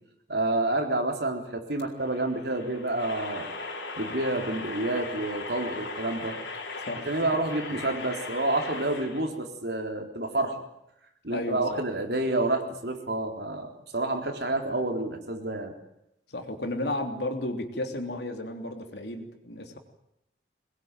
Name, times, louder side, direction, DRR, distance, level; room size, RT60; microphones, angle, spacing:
voice 1, 0.3-3.5 4.0-6.4 7.1-10.6 11.2-15.7, right 2 dB, 60° right, 3 dB, 3.8 m, -29 dB
sound 1, 1.8-9.2, left 3 dB, 85° left, 4.7 m, -38 dB
voice 2, 6.8-7.3 11.3-11.8 16.3-19.8, left 1 dB, 65° left, 5 dB, 3.3 m, -33 dB
22.0 x 21.0 x 9.2 m, 0.83 s
head